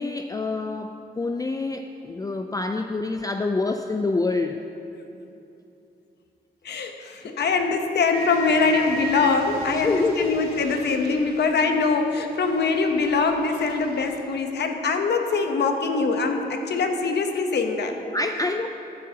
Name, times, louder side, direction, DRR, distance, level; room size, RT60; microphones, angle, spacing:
voice 1, 0.0-4.6 7.2-7.4 9.7-10.4 18.1-18.7, left 3 dB, 20° left, 6 dB, 0.4 m, -26 dB
voice 2, 6.6-18.0, left 4 dB, 80° left, 5 dB, 0.9 m, -23 dB
sound 1, 8.1-12.1 12.3-14.2, right 4 dB, 65° right, 2.3 m, -36 dB
15.0 x 9.4 x 2.8 m, 2.8 s
cardioid pair, 75°, 17 cm